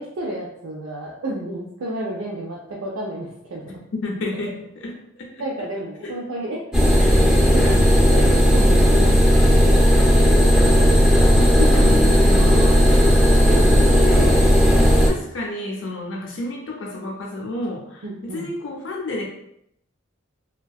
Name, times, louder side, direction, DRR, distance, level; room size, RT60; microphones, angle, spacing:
voice 1, 0.0-3.6 5.4-6.6 6.9-7.7 8.1-9.9 11.6-12.1 12.4-12.8 13.4-13.7 18.0-18.5, right 1 dB, 75° right, -4 dB, 0.4 m, -31 dB
voice 2, 3.6-5.4 6.0-6.2 10.1-11.0 11.3-12.8 13.7-14.5 14.8-19.3, left 2 dB, 65° left, -1 dB, 0.5 m, -31 dB
sound 1, 6.7-15.1, equal, 5° right, 0.4 m, -15 dB
2.6 x 2.2 x 2.3 m, 0.74 s
head